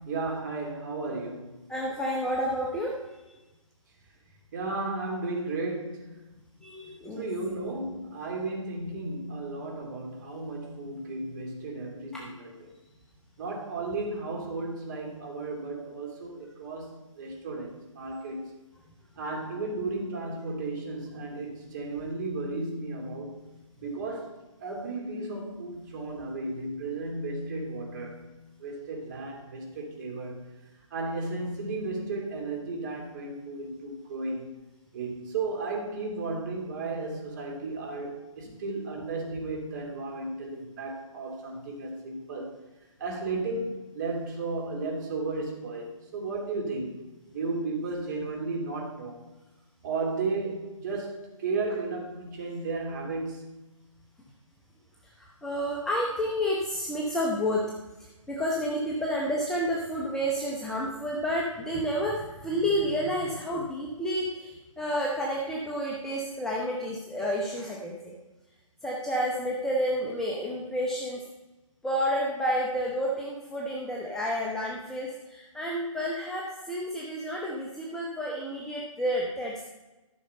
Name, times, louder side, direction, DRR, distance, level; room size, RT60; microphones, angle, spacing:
voice 1, 0.0-1.6 4.5-6.2 7.2-12.7 13.4-18.4 19.2-23.4 23.8-24.3 24.6-28.2 28.6-30.4 30.9-34.5 34.9-42.5 43.0-46.9 47.3-49.2 49.8-53.5, right 3 dB, 35° right, 0 dB, 2.7 m, -34 dB
voice 2, 1.7-2.9 6.6-7.3 55.2-57.6 58.0-68.2 68.8-71.2 71.8-79.5, equal, 5° left, -4 dB, 0.6 m, -30 dB
13.0 x 6.3 x 4.3 m, 1.1 s
figure-of-eight pair, 145°, 18 cm